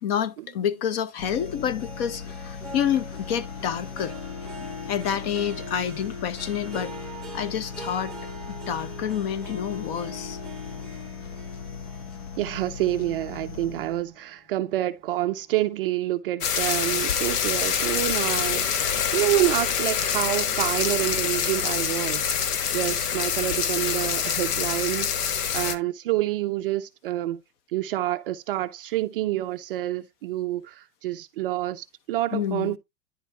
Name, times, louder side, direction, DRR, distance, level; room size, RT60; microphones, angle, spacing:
voice 1, 0.0-4.1 4.6-6.9 7.3-8.1 8.7-10.4 32.3-32.8, left 9 dB, 40° left, 0.7 m, -28 dB
sound 1, 1.2-14.2, left 6 dB, 65° left, 1.5 m, -39 dB
Harp, 1.3-14.0 14.5-14.9 15.3-15.4, equal, ahead, 1.0 m, -42 dB
voice 2, 12.4-27.4 27.7-32.8, right 15 dB, 40° right, 0.4 m, -28 dB
sound 2, 16.4-25.8, left 7 dB, 80° left, 1.2 m, -26 dB
10.0 x 4.0 x 3.3 m
supercardioid pair, 150°, 46 cm